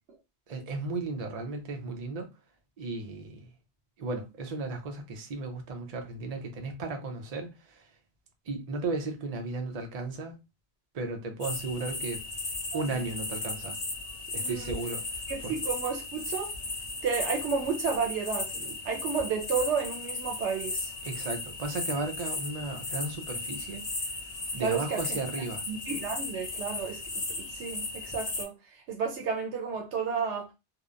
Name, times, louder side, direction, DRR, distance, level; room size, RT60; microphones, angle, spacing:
voice 1, 0.5-2.3 2.8-3.4 4.0-7.9 8.5-10.4 10.9-12.2 12.7-13.8 14.3-15.5 21.0-23.9 24.5-25.7, right 3 dB, 45° right, 0.6 m, -35 dB
sound 1, 11.4-28.4, left 3 dB, 35° left, 0.4 m, -36 dB
voice 2, 14.4-14.8 15.3-16.5 17.0-20.9 24.6-25.2 25.7-30.5, right 5 dB, 85° right, 0.9 m, -32 dB
2.8 x 2.1 x 2.4 m
omnidirectional pair, 1.1 m